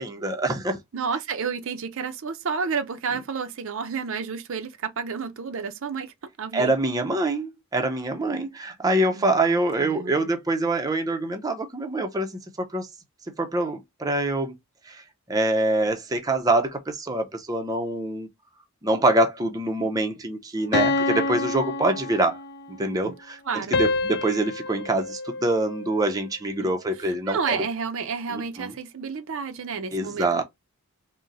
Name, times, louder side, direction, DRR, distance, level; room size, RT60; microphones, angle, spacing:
voice 1, 0.0-0.8 6.5-12.9 13.4-14.5 14.9-15.0 15.3-18.3 18.8-22.4 22.7-23.4 23.7-27.6 28.3-28.7 29.9-30.4, right 2 dB, 15° right, 0.5 m, -25 dB
voice 2, 0.9-6.7 9.1-10.3 22.8-23.2 23.4-23.8 26.6-26.8 27.0-30.4, right 5 dB, 60° right, 0.5 m, -31 dB
sound 1, 20.7-22.7 23.7-26.1, left 3 dB, 50° left, 0.4 m, -27 dB
3.7 x 2.1 x 4.0 m
head